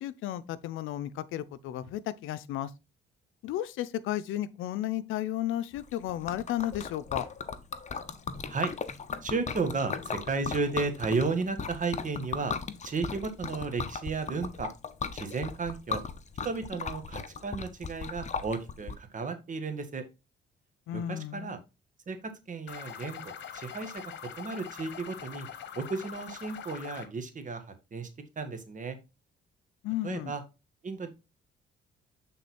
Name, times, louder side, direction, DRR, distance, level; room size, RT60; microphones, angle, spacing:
voice 1, 0.0-2.7 3.4-7.2 20.9-21.6 29.8-30.3, left 12 dB, 85° left, 0.6 m, -33 dB
Liquid, 5.8-18.9, left 5 dB, 35° left, 0.8 m, -37 dB
voice 2, 9.2-12.5 12.8-14.7 15.1-16.0 16.4-20.0 20.9-21.6 22.1-24.0 24.4-25.5 25.7-28.1 28.3-29.0 30.0-30.4 30.8-31.1, right 4 dB, 40° right, 1.5 m, -33 dB
sound 1, 22.7-27.1, left 8 dB, 65° left, 1.1 m, -43 dB
7.9 x 3.8 x 4.2 m
cardioid pair, 90°, 20 cm